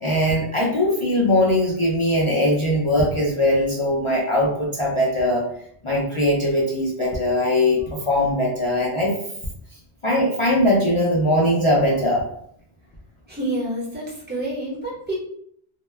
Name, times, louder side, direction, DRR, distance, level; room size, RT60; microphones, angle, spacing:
voice 1, 0.0-5.4 5.8-9.1 10.0-12.2, left 1 dB, 55° left, -4 dB, 0.3 m, -20 dB
voice 2, 13.3-15.1, right 1 dB, 10° right, -7 dB, 0.8 m, -28 dB
2.2 x 2.1 x 3.2 m, 0.67 s
omnidirectional pair, 1.1 m